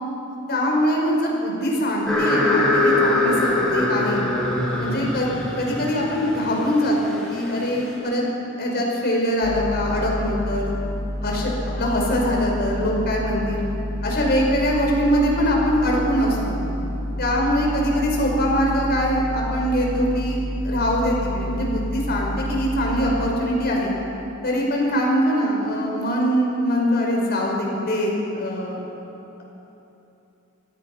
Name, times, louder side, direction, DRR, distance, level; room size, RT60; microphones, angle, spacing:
voice 1, 0.5-4.2 4.8-8.2 8.6-10.7 11.2-13.6 14.0-16.6 17.2-23.9 24.4-28.8, equal, 50° left, -1 dB, 5.2 m, -23 dB
sound 1, 2.1-7.9, left 2 dB, 5° left, 6.1 m, -23 dB
sound 2, 9.4-23.3, equal, 20° left, 2.6 m, -29 dB
26.0 x 17.5 x 5.9 m, 3.0 s
head